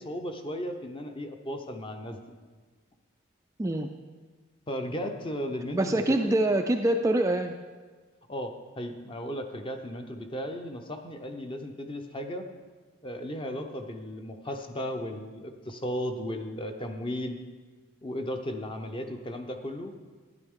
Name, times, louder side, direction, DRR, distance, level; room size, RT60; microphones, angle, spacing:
voice 1, 0.0-2.3 4.7-6.4 8.3-12.5 13.0-17.4 18.0-20.0, equal, 25° left, 6 dB, 0.7 m, -35 dB
voice 2, 3.6-3.9 5.7-7.5, right 1 dB, 15° right, 4 dB, 0.3 m, -25 dB
12.0 x 10.5 x 3.6 m, 1.4 s
head